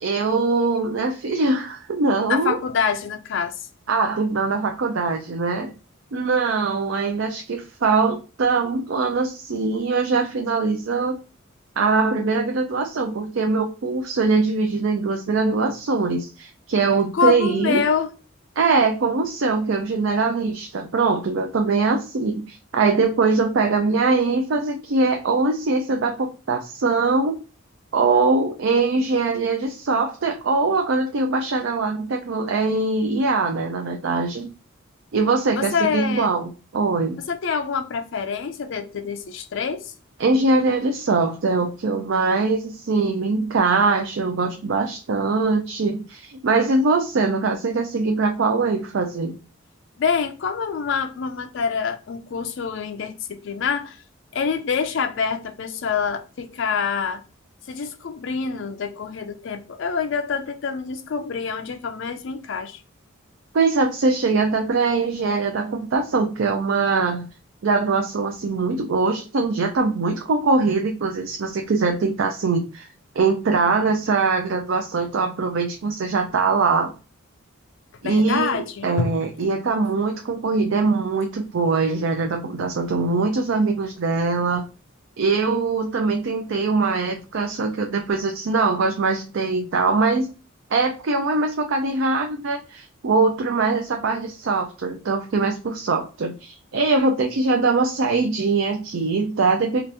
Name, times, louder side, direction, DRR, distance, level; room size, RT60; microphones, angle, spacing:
voice 1, 0.0-2.6 3.9-5.7 6.1-11.2 11.8-17.8 18.6-27.4 27.9-34.5 35.1-37.2 40.2-49.4 63.5-67.3 67.6-72.9 73.2-76.9 78.0-84.6 85.2-90.3 90.7-99.8, right 3 dB, 65° right, 0.4 m, -22 dB
voice 2, 2.3-3.5 17.1-18.1 35.6-36.3 37.3-39.9 50.0-54.0 54.3-57.2 57.7-62.8 78.0-79.2, left 6 dB, 60° left, 0.4 m, -26 dB
2.9 x 2.5 x 3.2 m
head